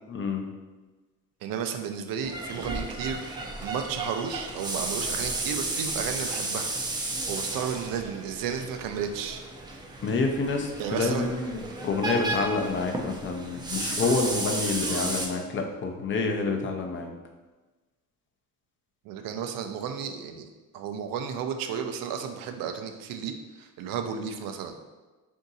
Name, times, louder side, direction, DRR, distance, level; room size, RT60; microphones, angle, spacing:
voice 1, 0.1-0.4 10.0-17.1, left 3 dB, 35° left, 2 dB, 0.5 m, -28 dB
voice 2, 1.4-6.7 7.3-9.4 10.8-11.3 19.0-20.5 20.7-24.8, right 7 dB, 90° right, 6 dB, 0.5 m, -33 dB
sound 1, 2.2-15.3, right 2 dB, 15° right, 0.4 m, -33 dB
3.6 x 2.7 x 4.0 m, 1.2 s
cardioid pair, 135°, 33 cm